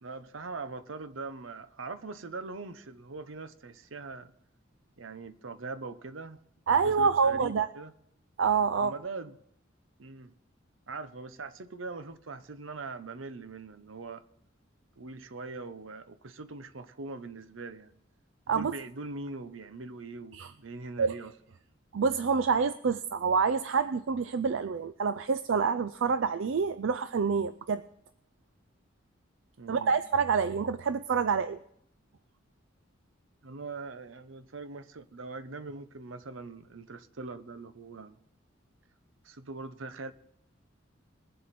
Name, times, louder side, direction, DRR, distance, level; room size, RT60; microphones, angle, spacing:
voice 1, 0.0-4.3 5.0-6.4 6.8-7.9 8.8-9.4 10.0-10.3 10.9-14.2 15.0-17.9 18.5-21.3 29.6-30.0 30.5-30.6 33.4-38.2 39.2-40.1, right 3 dB, 90° right, 0.8 m, -42 dB
voice 2, 6.7-7.7 8.4-8.9 18.5-18.7 20.3-20.5 21.0-21.2 21.9-27.8 29.7-31.6, right 5 dB, 75° right, 0.4 m, -27 dB
21.5 x 7.7 x 4.2 m
head